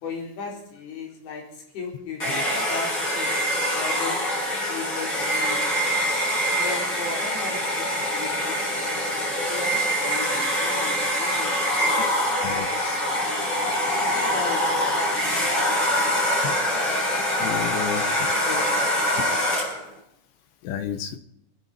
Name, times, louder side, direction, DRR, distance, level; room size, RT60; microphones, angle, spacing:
voice 1, 0.0-3.3 3.7-6.1 6.5-9.1 9.3-12.3 12.7-13.2 13.8-16.1 18.4-19.3, left 4 dB, 50° left, 0 dB, 5.9 m, -37 dB
Domestic sounds home sounds, 2.2-19.9, equal, 25° left, 6.4 m, -24 dB
voice 2, 12.4-13.0 17.4-18.0 20.6-21.2, left 9 dB, 75° left, 9 dB, 3.1 m, -31 dB
28.0 x 10.5 x 4.3 m, 0.72 s
omnidirectional pair, 5.8 m